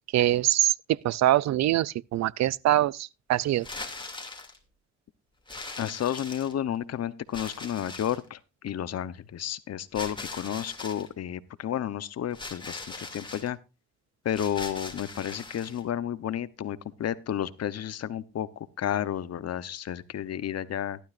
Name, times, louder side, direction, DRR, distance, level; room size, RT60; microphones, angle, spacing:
voice 1, 0.1-0.7 1.0-3.7, right 14 dB, 65° right, 0.5 m, -24 dB
sound 1, 3.5-4.6 5.5-6.8 7.3-8.3 9.9-11.1 12.3-13.5 14.3-15.8, left 3 dB, 15° left, 2.6 m, -40 dB
voice 2, 5.8-8.4 8.6-13.6 14.2-18.5 18.8-21.0, left 10 dB, 55° left, 1.0 m, -31 dB
14.5 x 12.0 x 2.5 m
cardioid pair, 90°, 30 cm